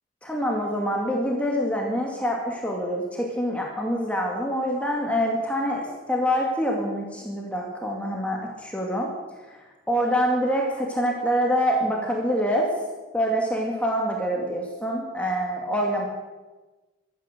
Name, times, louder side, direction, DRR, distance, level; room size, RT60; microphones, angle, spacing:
voice 1, 0.2-9.1 9.9-12.7 13.1-16.1, equal, 5° left, -1 dB, 2.1 m, -25 dB
16.0 x 12.5 x 6.7 m, 1.2 s
head